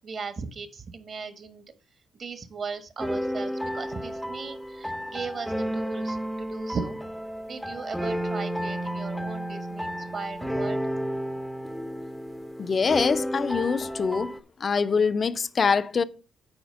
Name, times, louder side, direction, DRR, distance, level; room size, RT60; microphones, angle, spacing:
voice 1, 0.0-1.6 2.1-7.0 7.5-10.8, right 5 dB, 50° right, 1.4 m, -37 dB
sound 1, 3.0-14.4, equal, ahead, 0.6 m, -32 dB
voice 2, 12.6-14.3 14.6-16.0, left 5 dB, 40° left, 0.5 m, -24 dB
8.7 x 4.6 x 5.5 m
cardioid pair, 90°, 0 cm